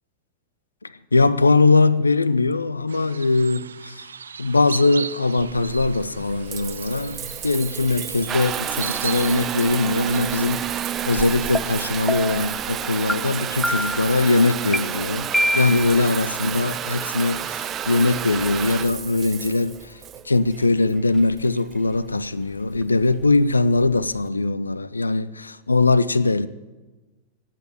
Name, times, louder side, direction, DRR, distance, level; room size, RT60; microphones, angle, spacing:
voice 1, 1.1-4.1 4.4-15.3 15.5-20.0 20.3-26.5, left 3 dB, 80° left, 0.5 m, -21 dB
sound 1, 2.9-10.5, right 7 dB, 70° right, 0.4 m, -38 dB
Water tap faucet / Bathtub (filling or washing) / Trickle dribble, 5.4-24.3, right 9 dB, 30° right, 0.9 m, -31 dB
sound 2, 11.5-11.6 12.1-12.5 13.1-13.2 13.6-14.1 14.7-14.8 15.3-15.9, equal, ahead, 0.5 m, -23 dB
18.5 x 8.5 x 8.9 m
figure-of-eight pair, 90°, 0 cm